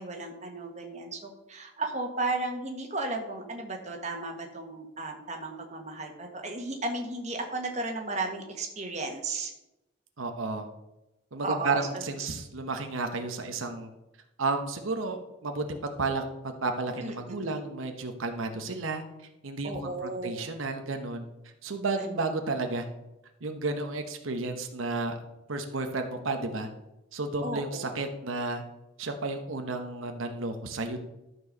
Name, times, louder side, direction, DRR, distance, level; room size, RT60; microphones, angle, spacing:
voice 1, 0.0-9.5 11.4-11.8 17.0-17.6 19.6-20.5 21.9-22.2 27.4-27.8, right 2 dB, 35° right, 2 dB, 1.5 m, -34 dB
voice 2, 10.2-10.7 11.3-13.9 14.4-16.2 16.6-19.0 19.4-21.2 21.6-22.9 23.4-25.2 25.5-26.7 27.1-28.6 29.0-31.0, right 3 dB, 90° right, 5 dB, 1.1 m, -32 dB
12.5 x 4.6 x 6.5 m, 0.94 s
head